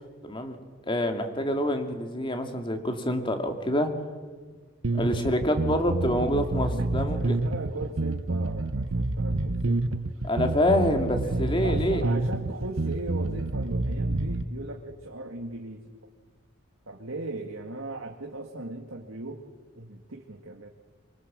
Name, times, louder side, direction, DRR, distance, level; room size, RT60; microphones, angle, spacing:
voice 1, 0.2-0.6 0.9-3.9 4.9-7.4 10.2-12.0, left 1 dB, 25° left, 5 dB, 2.3 m, -26 dB
sound 1, 4.8-14.4, right 2 dB, 75° right, 1.0 m, -28 dB
voice 2, 6.6-10.0 11.2-15.8 16.9-19.4 19.8-20.7, right 2 dB, 90° right, 2 dB, 2.0 m, -38 dB
24.0 x 23.5 x 7.5 m, 1.5 s
head